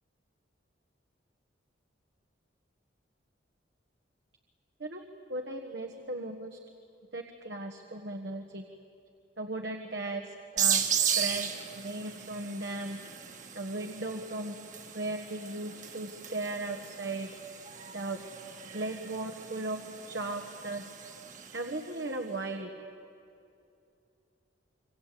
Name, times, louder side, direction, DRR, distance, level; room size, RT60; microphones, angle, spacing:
voice 1, 4.8-6.6 7.1-8.7 9.4-10.9 11.1-13.0 13.5-14.5 14.9-17.6 17.9-18.2 18.7-19.8 20.1-20.9 21.5-22.7, right 2 dB, 65° right, 3 dB, 1.5 m, -37 dB
sound 1, 10.6-21.9, right 8 dB, 40° right, 1.7 m, -36 dB
27.0 x 24.5 x 8.6 m, 2.6 s
head